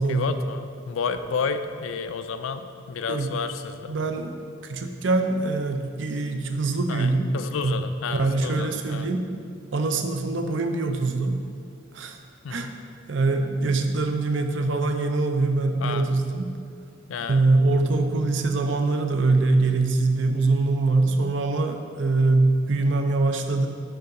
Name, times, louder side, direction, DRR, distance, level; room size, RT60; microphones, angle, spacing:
voice 1, 0.1-4.1 6.9-9.1 12.4-12.7 15.8-16.1 17.1-17.4, left 5 dB, 90° left, 10 dB, 0.4 m, -31 dB
voice 2, 3.9-4.3 4.6-7.3 7.6-7.7 8.1-9.2 9.7-11.4 11.9-12.2 12.5-12.7 13.1-16.5 17.3-23.7, right 3 dB, 70° right, 6 dB, 0.5 m, -23 dB
7.0 x 3.8 x 5.3 m, 2.3 s
head